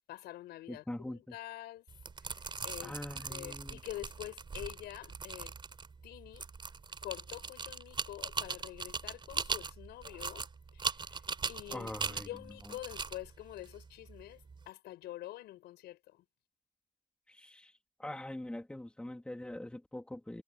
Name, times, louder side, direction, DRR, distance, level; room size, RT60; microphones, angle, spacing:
voice 1, 0.0-1.8 2.2-3.0 3.3-5.5 6.0-6.5 7.0-10.5 10.7-11.2 11.5-16.2, left 15 dB, 75° left, 5.6 m, -46 dB
voice 2, 0.7-1.4 2.8-3.8 11.7-12.3 17.3-17.7 18.0-20.4, left 1 dB, 5° left, 3.4 m, -43 dB
sound 1, 1.9-14.6, right 5 dB, 30° right, 4.1 m, -40 dB
cardioid pair, 110°, 17 cm